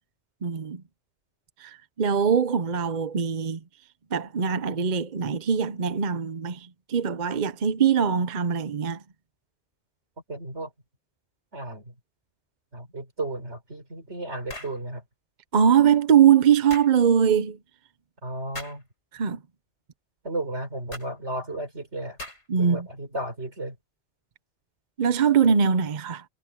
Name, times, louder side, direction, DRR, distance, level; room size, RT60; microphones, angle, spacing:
voice 1, 0.4-0.8 1.6-3.6 4.1-9.0 15.5-17.6 19.1-19.4 22.5-22.9 25.0-26.2, right 7 dB, 45° right, 0.9 m, -22 dB
voice 2, 10.3-10.7 11.5-12.0 12.7-15.0 18.2-18.8 20.2-22.2 22.5-23.8, right 1 dB, 85° right, 4.7 m, -34 dB
sound 1, 14.5-14.8 16.7-16.9 18.5-18.8 20.9-21.1 22.2-22.6, left 1 dB, 85° left, 5.8 m, -39 dB
omnidirectional pair, 1.1 m